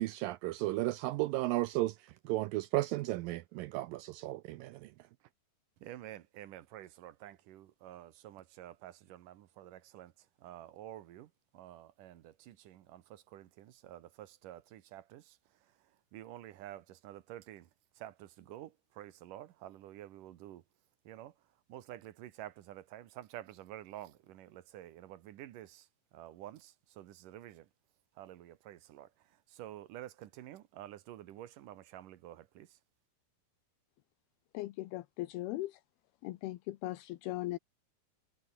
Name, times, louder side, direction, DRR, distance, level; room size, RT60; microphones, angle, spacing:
voice 1, 0.0-2.0 2.3-4.9, right 17 dB, 85° right, 2.1 m, -34 dB
voice 2, 5.8-10.1 10.4-15.4 16.1-17.7 18.0-20.6 21.1-21.3 21.7-25.9 26.1-27.7 28.2-29.1 29.5-32.7, right 13 dB, 65° right, 2.4 m, -49 dB
voice 3, 34.5-35.8 36.2-37.6, left 17 dB, 80° left, 2.8 m, -39 dB
omnidirectional pair, 4.6 m